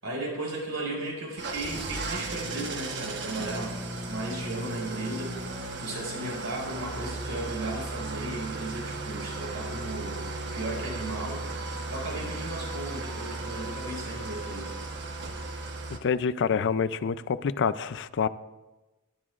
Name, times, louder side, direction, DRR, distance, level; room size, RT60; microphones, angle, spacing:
voice 1, 0.0-10.3 10.5-14.7, right 2 dB, 70° right, -2 dB, 5.3 m, -36 dB
Engine starting / Idling, 1.4-16.0, right 2 dB, 55° right, 1.2 m, -36 dB
voice 2, 15.9-18.3, left 6 dB, 55° left, 14 dB, 0.4 m, -27 dB
23.0 x 12.0 x 2.5 m, 1.1 s
head